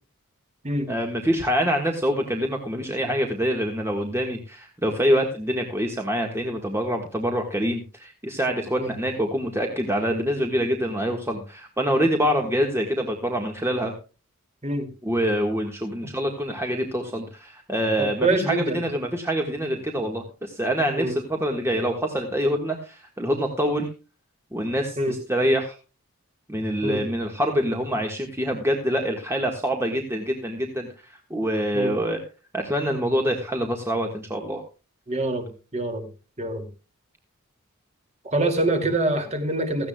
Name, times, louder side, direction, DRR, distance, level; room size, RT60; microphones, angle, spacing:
voice 1, 0.9-13.9 15.0-23.9 24.5-25.7 26.5-32.2 32.5-34.6, equal, 10° right, 2 dB, 1.5 m, -25 dB
voice 2, 18.0-18.8 21.0-21.1 25.0-25.1 26.8-27.0 31.7-31.9 35.1-36.1 36.4-36.6 38.2-39.9, right 2 dB, 30° right, 6 dB, 2.6 m, -25 dB
17.0 x 14.5 x 2.3 m, 0.33 s
head